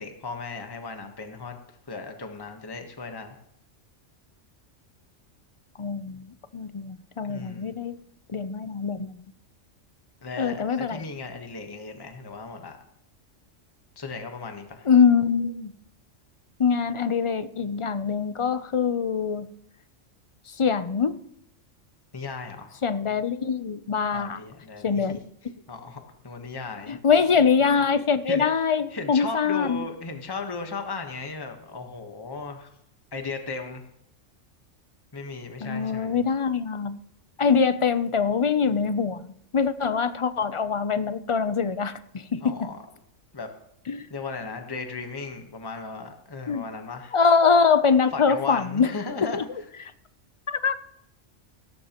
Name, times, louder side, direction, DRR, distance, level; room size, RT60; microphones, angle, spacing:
voice 1, 0.0-1.6 1.9-3.4 7.3-7.7 10.2-12.8 14.0-14.9 22.1-22.8 24.1-25.2 25.7-26.9 28.2-28.4 28.9-32.7 33.1-33.8 35.1-36.2 42.4-42.8 43.3-43.5 44.1-47.2 48.1-49.4, left 4 dB, 20° left, 5 dB, 1.2 m, -36 dB
voice 2, 5.8-6.3 6.5-8.0 8.3-9.1 10.4-11.0 14.9-15.7 16.6-19.5 20.6-21.2 22.8-24.4 24.8-25.2 26.9-29.8 35.6-37.0 37.4-42.7 43.9-44.1 46.5-46.7 47.1-48.9 49.3-49.4 50.5-50.7, left 6 dB, 45° left, 12 dB, 0.4 m, -23 dB
17.0 x 14.0 x 3.0 m, 0.76 s
omnidirectional pair, 1.3 m